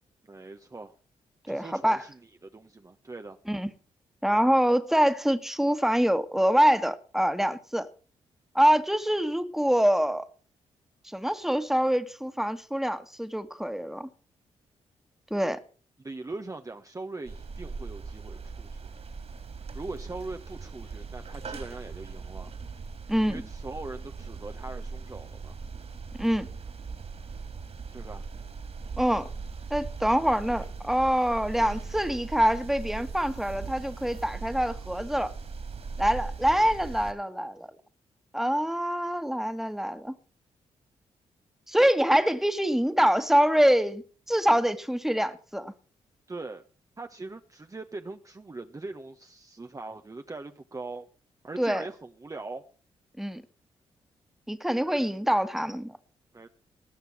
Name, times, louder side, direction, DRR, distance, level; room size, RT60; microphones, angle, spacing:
voice 1, 0.3-0.9 1.5-3.4 16.0-18.9 19.7-22.5 23.3-25.6 27.9-28.2 46.3-46.6 47.0-51.1 51.4-52.6 56.3-56.5, right 3 dB, 25° right, 1.2 m, -41 dB
voice 2, 1.5-2.0 3.5-3.7 4.2-7.9 8.6-10.3 11.0-14.1 15.3-15.6 23.1-23.4 26.2-26.5 29.0-29.3 29.7-35.3 36.0-37.7 38.3-40.1 41.7-44.0 44.3-45.7 51.6-51.8 53.2-53.4 54.5-55.9, equal, 5° right, 1.8 m, -25 dB
sound 1, 17.2-37.1, right 4 dB, 55° right, 3.6 m, -39 dB
19.5 x 6.8 x 7.2 m
supercardioid pair, 55°, 13 cm